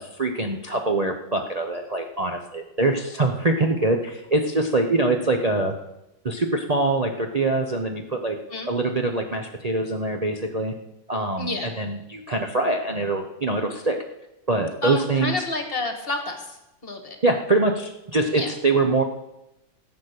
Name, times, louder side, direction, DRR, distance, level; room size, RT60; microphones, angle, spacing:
voice 1, 0.0-5.7 6.2-8.4 8.7-10.7 11.1-14.0 14.5-15.4 17.2-19.0, right 2 dB, 75° right, 3 dB, 0.3 m, -24 dB
voice 2, 11.4-11.7 14.8-16.4 16.8-17.2 18.3-18.5, left 2 dB, 30° left, 5 dB, 1.6 m, -29 dB
14.5 x 8.4 x 6.6 m, 0.92 s
omnidirectional pair, 2.2 m